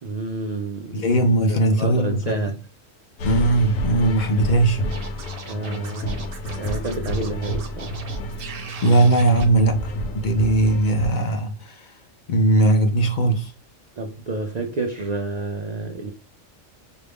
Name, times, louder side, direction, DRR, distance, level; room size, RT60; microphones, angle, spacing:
voice 1, 0.0-1.1 1.5-2.6 5.5-8.0 14.0-16.1, right 3 dB, 75° right, 0.3 m, -29 dB
voice 2, 0.9-2.4 3.2-4.8 8.8-11.9 12.3-13.5, right 2 dB, 55° left, 0.5 m, -19 dB
sound 1, 3.2-11.1, left 1 dB, 85° left, 1.1 m, -30 dB
Scratching (performance technique), 4.9-9.4, right 5 dB, 55° right, 0.8 m, -39 dB
5.0 x 2.3 x 3.4 m
omnidirectional pair, 1.4 m